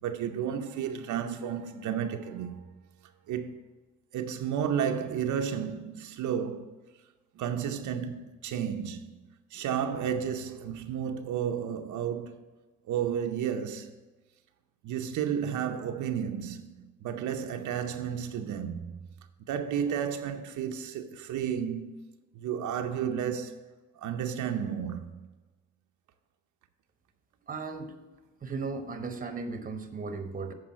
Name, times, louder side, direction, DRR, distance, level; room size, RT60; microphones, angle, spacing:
voice 1, 0.0-2.6 3.3-3.6 4.1-6.7 7.4-9.2 9.5-12.4 12.9-13.9 14.8-18.9 19.4-21.9 22.3-23.6 24.0-25.3, right 8 dB, 75° right, 0.7 m, -32 dB
voice 2, 27.5-27.9 28.4-30.5, right 4 dB, 30° right, 1.0 m, -36 dB
7.6 x 4.7 x 7.1 m
cardioid pair, 90°, 30 cm